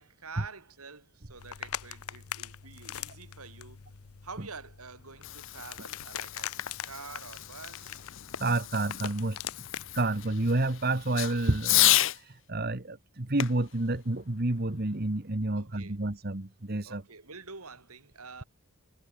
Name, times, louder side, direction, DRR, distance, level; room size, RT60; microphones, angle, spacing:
voice 1, 0.0-3.8 4.2-8.0 15.5-16.0 16.8-18.4, right 4 dB, 90° right, 4.2 m, -47 dB
sound 1, 1.4-10.3, left 9 dB, 85° left, 0.8 m, -42 dB
Fireworks, 4.9-12.2 13.4-15.0, left 15 dB, 60° left, 0.8 m, -32 dB
voice 2, 8.4-9.4 9.9-17.0, right 2 dB, 45° right, 1.4 m, -29 dB
head